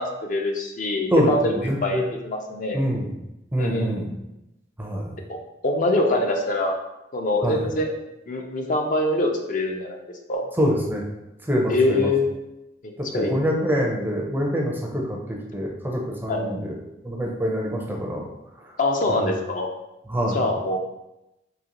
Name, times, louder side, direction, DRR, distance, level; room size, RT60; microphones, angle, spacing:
voice 1, 0.0-1.6 1.8-2.8 3.6-4.2 5.3-5.4 5.6-6.7 7.1-7.9 8.3-10.0 10.3-10.4 11.7-12.2 12.8-13.5 16.3-16.5 18.8-19.7 20.3-20.8, left 2 dB, 45° left, 2 dB, 0.5 m, -24 dB
voice 2, 1.1-2.1 2.7-3.1 3.5-4.1 4.8-5.2 7.4-7.6 10.6-11.1 11.5-12.1 13.0-16.7 17.0-18.3 18.6-18.7 19.1-19.3 20.1-20.4, equal, 10° right, -1 dB, 0.5 m, -25 dB
3.9 x 2.8 x 2.9 m, 0.92 s
head